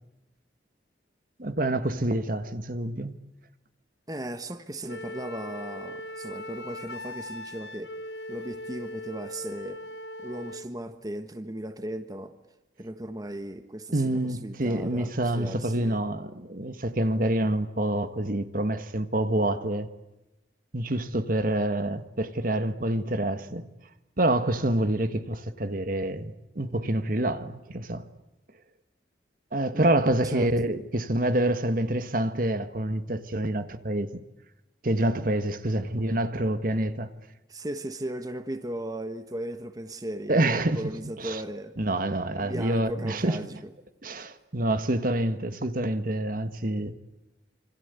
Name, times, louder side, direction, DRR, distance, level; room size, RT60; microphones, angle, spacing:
voice 1, 1.4-3.1 13.9-19.9 20.7-23.7 24.2-28.0 29.5-34.1 34.8-37.1 40.3-40.8 41.2-41.4 41.8-43.4 44.0-46.9, right 1 dB, 50° right, 1.6 m, -27 dB
voice 2, 4.1-7.9 8.3-9.8 10.2-12.3 12.8-16.0 29.7-29.9 30.2-30.5 37.5-41.7 42.4-43.7, right 1 dB, 20° right, 1.3 m, -37 dB
Wind instrument woodwind instrument, 4.9-10.7, left 1 dB, 65° left, 1.4 m, -39 dB
27.0 x 25.5 x 8.3 m
head